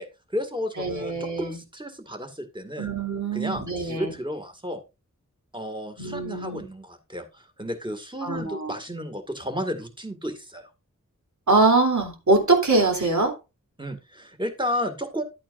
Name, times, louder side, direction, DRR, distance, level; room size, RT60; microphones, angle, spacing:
voice 1, 0.0-2.9 3.3-4.8 5.5-10.7 13.8-15.2, equal, 15° right, 2.1 m, -32 dB
voice 2, 0.8-1.6 2.8-4.1 6.0-6.6 8.2-8.7 11.5-13.4, right 3 dB, 65° right, 3.3 m, -23 dB
11.5 x 8.8 x 2.6 m
wide cardioid pair, 70°, 31 cm